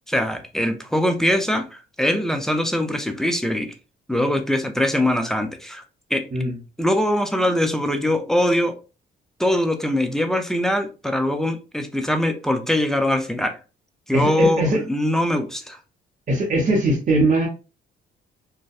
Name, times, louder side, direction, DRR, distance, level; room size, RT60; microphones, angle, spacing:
voice 1, 0.1-3.7 4.1-5.8 6.1-6.3 6.8-8.8 9.4-13.6 14.1-15.8, left 1 dB, ahead, 0.4 m, -22 dB
voice 2, 14.1-14.8 16.3-17.5, right 1 dB, 40° right, 0.7 m, -20 dB
2.6 x 2.1 x 2.3 m
cardioid pair, 90°, 20 cm